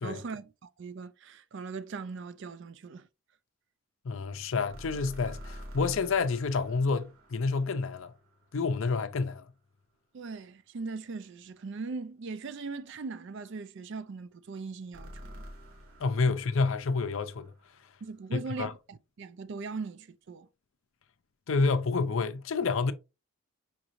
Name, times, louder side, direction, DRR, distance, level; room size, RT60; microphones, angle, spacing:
voice 1, 0.0-3.1 10.1-15.4 18.0-20.5, right 4 dB, 55° right, 0.4 m, -40 dB
voice 2, 4.0-8.1 8.5-9.5 16.0-17.5 18.3-18.7 21.5-22.9, left 4 dB, 65° left, 0.5 m, -29 dB
sound 1, 4.7-8.8 14.9-18.1, equal, 70° right, 1.5 m, -48 dB
5.8 x 2.6 x 2.9 m
head